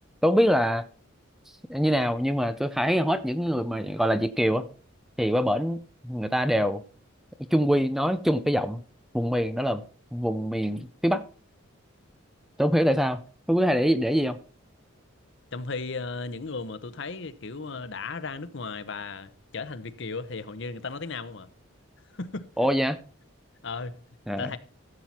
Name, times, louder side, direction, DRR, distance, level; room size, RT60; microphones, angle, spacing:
voice 1, 0.2-0.8 1.7-4.6 5.2-5.8 6.0-6.8 7.5-8.8 9.1-9.8 10.1-11.3 12.6-13.2 13.5-14.4 22.6-23.0 24.3-24.5, equal, ahead, 0.5 m, -24 dB
voice 2, 15.5-21.5 22.1-22.5 23.6-24.0 24.4-24.6, left 4 dB, 60° left, 0.9 m, -35 dB
14.5 x 7.7 x 4.3 m
head